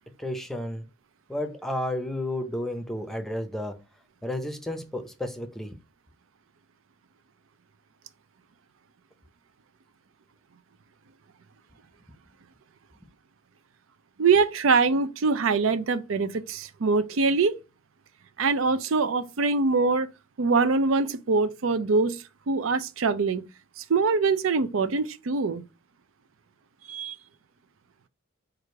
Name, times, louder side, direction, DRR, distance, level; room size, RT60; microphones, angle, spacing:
voice 1, 0.2-0.8 1.3-3.8 4.2-5.8, left 1 dB, ahead, 0.6 m, -32 dB
voice 2, 14.2-17.6 18.4-20.1 20.4-23.4 23.8-25.6 26.9-27.2, right 4 dB, 80° right, 0.5 m, -24 dB
4.8 x 2.5 x 4.4 m
head